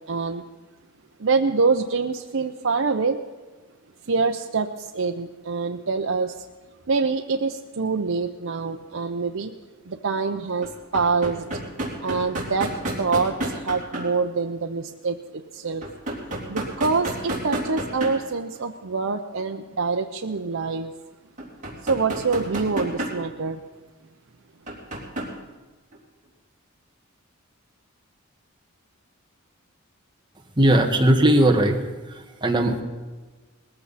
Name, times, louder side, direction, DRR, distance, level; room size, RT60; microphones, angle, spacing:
voice 1, 0.1-0.4 1.2-3.2 4.1-6.3 6.9-9.5 9.9-11.5 12.0-12.7 13.0-15.8 16.5-20.9 21.8-23.6, right 4 dB, 65° right, 4 dB, 0.7 m, -25 dB
sound 1, 8.6-8.7 10.6-14.1 15.8-18.3 18.5-18.6 21.4-23.3 24.7-25.3 25.9-26.0, right 1 dB, 35° right, 3.4 m, -30 dB
voice 2, 30.6-31.7 32.1-32.8, right 1 dB, 20° right, 3 dB, 1.5 m, -18 dB
20.0 x 14.5 x 4.2 m, 1.3 s
head